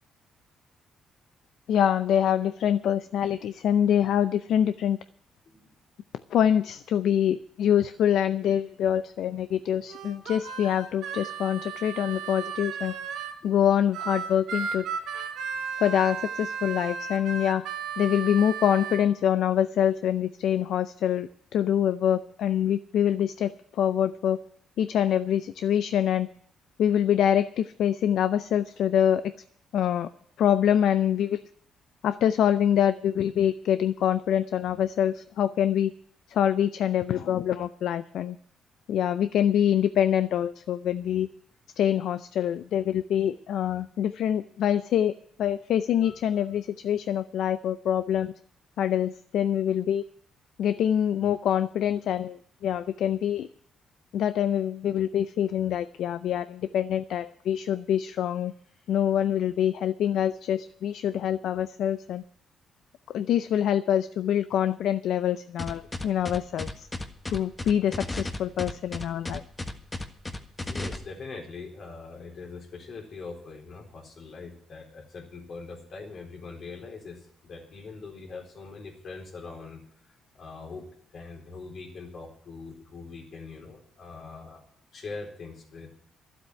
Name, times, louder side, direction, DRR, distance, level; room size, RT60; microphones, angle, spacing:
voice 1, 1.7-5.0 6.3-12.9 13.4-14.9 15.8-17.7 18.0-24.4 24.8-26.3 26.8-29.3 29.7-30.1 30.4-31.4 32.0-35.9 36.3-38.4 38.9-41.3 41.8-45.1 45.4-48.3 48.8-50.0 50.6-53.5 54.1-58.5 58.9-62.2 63.1-66.9 67.3-69.4, left 10 dB, 75° left, 13 dB, 0.5 m, -25 dB
Harmonica, 9.9-13.4 13.9-19.0, right 6 dB, 85° right, 3.2 m, -35 dB
sound 1, 65.6-71.0, left 2 dB, 20° left, 1.5 m, -34 dB
voice 2, 70.6-80.8 81.1-84.6 84.9-85.9, left 4 dB, 55° left, 1 dB, 3.9 m, -42 dB
12.0 x 7.9 x 9.7 m, 0.64 s
cardioid pair, 90°, 0 cm